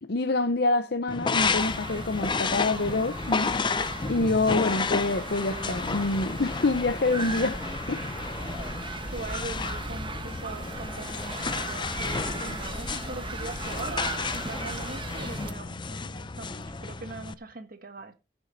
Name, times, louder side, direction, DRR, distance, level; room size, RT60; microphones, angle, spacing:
voice 1, 0.0-3.5 4.1-7.6 7.9-8.0, left 2 dB, 60° left, 0.8 m, -26 dB
sound 1, 1.1-17.3, left 4 dB, 25° left, 0.5 m, -32 dB
sound 2, 1.4-15.5, right 3 dB, 30° right, 1.0 m, -37 dB
voice 2, 9.1-18.1, right 3 dB, 55° right, 1.5 m, -41 dB
15.0 x 7.2 x 4.0 m
head